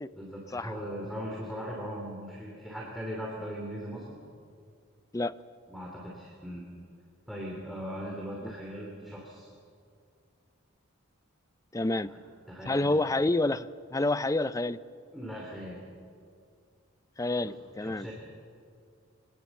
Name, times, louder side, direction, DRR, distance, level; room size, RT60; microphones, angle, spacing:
voice 1, 0.1-4.2 5.7-6.6 7.3-9.5 12.1-12.2 12.5-13.0 15.1-15.8 17.4-17.5 17.8-18.1, equal, ahead, -3 dB, 2.8 m, -39 dB
voice 2, 11.7-12.1 12.7-14.8 17.2-18.1, left 2 dB, 15° left, 15 dB, 0.4 m, -28 dB
24.5 x 19.0 x 7.1 m, 2.3 s
head